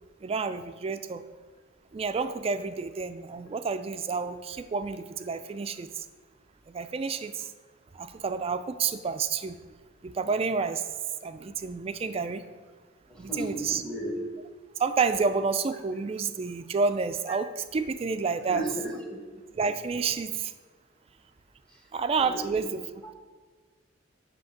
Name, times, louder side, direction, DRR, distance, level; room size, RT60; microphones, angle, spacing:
voice 1, 0.2-1.2 1.9-6.0 6.7-7.5 7.9-9.6 10.0-10.8 11.2-12.4 13.2-13.8 14.8-18.6 19.5-20.5 21.9-22.9, right 5 dB, 30° right, 10 dB, 0.3 m, -29 dB
voice 2, 13.1-14.3 18.5-19.2 22.2-22.6 23.0-23.1, right 1 dB, 5° left, -1 dB, 1.0 m, -35 dB
7.9 x 2.9 x 5.8 m, 1.5 s
head